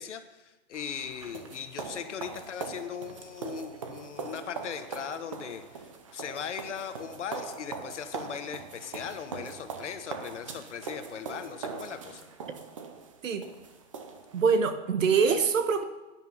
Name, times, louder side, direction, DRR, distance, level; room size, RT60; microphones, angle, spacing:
voice 1, 0.0-12.3, left 8 dB, 60° left, 9 dB, 1.3 m, -39 dB
sound 1, 0.7-14.4, right 5 dB, 25° right, 0.6 m, -41 dB
voice 2, 14.3-15.8, right 5 dB, 70° right, 9 dB, 1.4 m, -24 dB
11.0 x 10.0 x 5.5 m, 1.1 s
hypercardioid pair, 175°, 40 cm